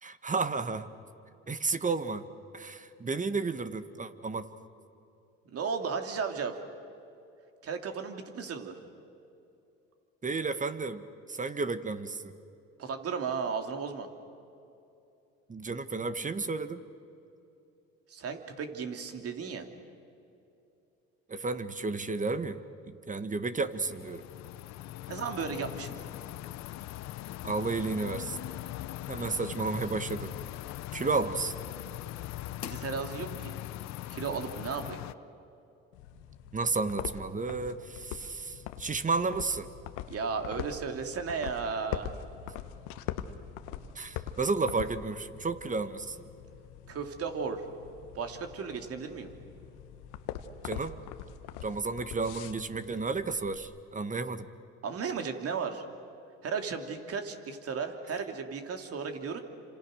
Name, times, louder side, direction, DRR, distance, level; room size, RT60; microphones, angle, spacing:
voice 1, 0.0-0.9 1.5-2.2 2.5-4.4 10.2-12.4 15.5-16.8 21.3-24.2 27.4-28.4 29.1-30.3 30.9-31.5 36.5-39.7 43.9-46.2 50.6-50.9 51.6-54.5, right 4 dB, 25° right, 11 dB, 1.6 m, -32 dB
voice 2, 5.5-6.6 7.6-8.8 12.8-14.1 18.1-19.7 25.1-25.9 32.6-33.5 34.1-35.0 40.1-42.2 46.9-47.6 48.1-49.3 54.8-55.8 56.4-59.4, right 5 dB, 55° right, 5 dB, 2.9 m, -35 dB
sound 1, 23.7-35.1, left 14 dB, 65° left, 0.8 m, -40 dB
sound 2, 35.9-53.6, left 10 dB, 85° left, 1.2 m, -43 dB
29.0 x 26.5 x 6.5 m, 2.7 s
supercardioid pair, 75°, 29 cm